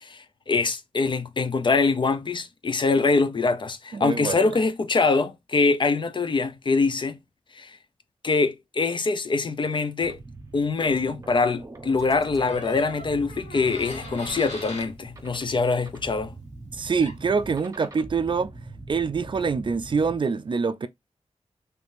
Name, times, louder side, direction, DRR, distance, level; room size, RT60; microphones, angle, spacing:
voice 1, 0.0-7.2 7.6-7.8 8.2-10.2 10.5-16.3, left 4 dB, 45° left, 0.5 m, -24 dB
voice 2, 3.9-4.5 16.7-18.5 18.9-20.9, right 5 dB, 45° right, 0.4 m, -25 dB
sound 1, 10.0-20.2, right 2 dB, 30° right, 0.8 m, -43 dB
Door, 12.4-14.9 16.7-16.8 17.0-17.4, left 1 dB, 90° left, 1.9 m, -40 dB
3.4 x 3.3 x 2.6 m
wide cardioid pair, 120°, 11 cm